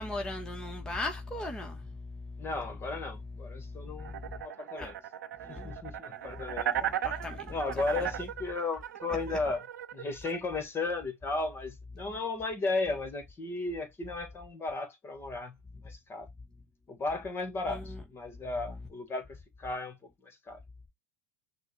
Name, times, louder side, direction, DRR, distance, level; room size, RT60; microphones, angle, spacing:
voice 1, 0.0-2.5 3.6-4.4 4.8-4.9 5.5-5.7 6.8-7.5 17.7-17.8, left 2 dB, 10° left, 1.1 m, -38 dB
voice 2, 2.4-4.9 5.5-6.9 7.5-9.7 9.9-16.3 16.9-20.0 20.2-20.6, left 3 dB, 25° left, 1.4 m, -35 dB
sound 1, 4.0-10.4, right 10 dB, 85° right, 0.6 m, -36 dB
6.1 x 2.2 x 3.1 m
hypercardioid pair, 95°, 9 cm